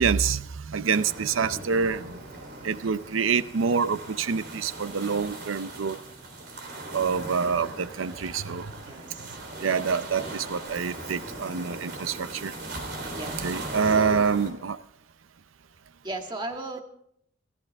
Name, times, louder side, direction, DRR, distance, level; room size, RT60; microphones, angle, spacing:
voice 1, 0.0-2.0 2.6-6.0 6.9-8.7 9.6-12.5 13.4-14.8, right 6 dB, 80° right, 0.6 m, -26 dB
sound 1, 0.9-14.5, right 2 dB, 55° right, 3.6 m, -39 dB
voice 2, 8.8-9.4 13.1-13.6 13.9-14.4 16.0-16.8, right 2 dB, 20° right, 1.8 m, -37 dB
27.5 x 14.0 x 3.5 m
head